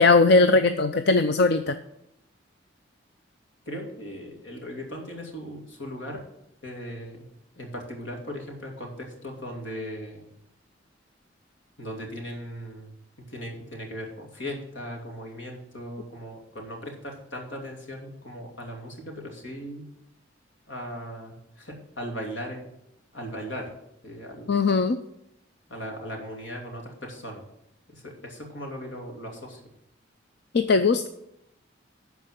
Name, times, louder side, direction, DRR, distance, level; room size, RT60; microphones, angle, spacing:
voice 1, 0.0-1.7 24.5-25.0 30.5-31.1, left 3 dB, 60° left, 9 dB, 0.5 m, -19 dB
voice 2, 3.6-6.2 6.6-7.3 7.5-10.3 11.8-12.9 13.3-19.9 20.7-22.7 23.1-23.7 24.0-24.5 25.7-27.4 27.9-29.6, equal, 80° left, 1 dB, 2.8 m, -38 dB
12.5 x 4.6 x 7.7 m, 0.80 s
head